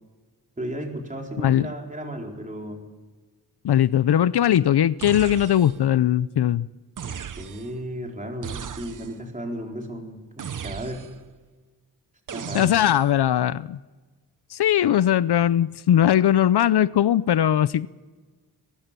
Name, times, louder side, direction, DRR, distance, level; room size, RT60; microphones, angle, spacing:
voice 1, 0.6-2.8 7.0-11.1 12.3-12.7, equal, 20° right, 4.2 m, -34 dB
voice 2, 1.4-1.7 3.6-6.7 12.5-13.8 14.5-17.9, left 11 dB, 75° left, 0.6 m, -20 dB
sound 1, 5.0-5.9 7.0-7.8 8.4-9.3 10.4-11.3 12.3-13.2, right 7 dB, 50° right, 0.8 m, -36 dB
22.0 x 21.5 x 6.9 m
wide cardioid pair, 110°, 39 cm